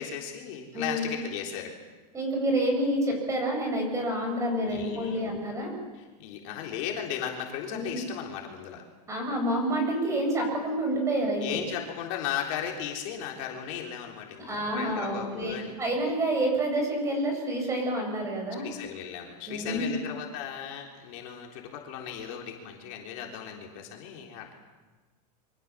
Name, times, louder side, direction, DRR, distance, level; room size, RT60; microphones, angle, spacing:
voice 1, 0.0-1.7 4.6-5.3 5.9-8.8 11.4-15.7 18.6-24.5, left 9 dB, 50° left, 1 dB, 3.7 m, -36 dB
voice 2, 0.7-1.2 2.1-5.7 7.7-8.0 9.1-11.7 14.4-18.7 19.5-20.0, right 1 dB, 15° right, 2 dB, 7.5 m, -28 dB
27.5 x 25.0 x 7.5 m, 1.3 s
supercardioid pair, 160°, 21 cm